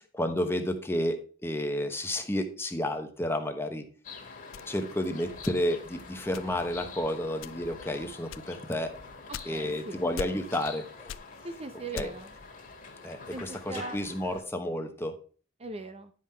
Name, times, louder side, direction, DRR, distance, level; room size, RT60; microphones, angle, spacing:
voice 1, 0.0-3.8 4.7-8.9 9.4-11.2 11.9-12.1 13.0-15.1, left 1 dB, 10° left, 6 dB, 1.0 m, -31 dB
sound 1, 4.0-14.4, left 4 dB, 45° left, 1.9 m, -46 dB
sound 2, 4.5-5.9 6.3-6.8 7.3-7.8 8.3-9.8 10.2-10.8 11.1-12.4, left 8 dB, 80° left, 0.4 m, -42 dB
voice 2, 9.3-10.0 11.4-12.3 13.3-14.0 15.6-16.1, right 2 dB, 30° right, 8 dB, 0.7 m, -40 dB
10.0 x 5.7 x 4.4 m, 0.39 s
head